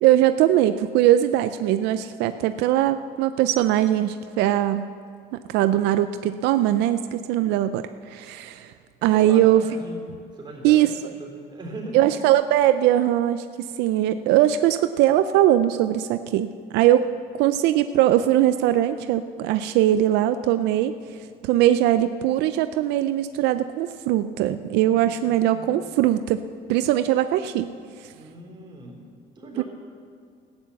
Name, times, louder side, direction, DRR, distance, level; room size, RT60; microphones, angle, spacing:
voice 1, 0.0-4.9 5.3-8.7 9.0-9.6 10.6-10.9 11.9-13.4 13.8-17.1 17.4-20.9 21.4-26.4 26.7-27.7 29.6-29.7, right 12 dB, 90° right, 10 dB, 0.5 m, -20 dB
voice 2, 9.1-12.0 24.8-25.8 28.1-29.6, right 2 dB, 25° right, -2 dB, 3.8 m, -40 dB
14.0 x 9.7 x 7.2 m, 2.1 s
cardioid pair, 110°, 17 cm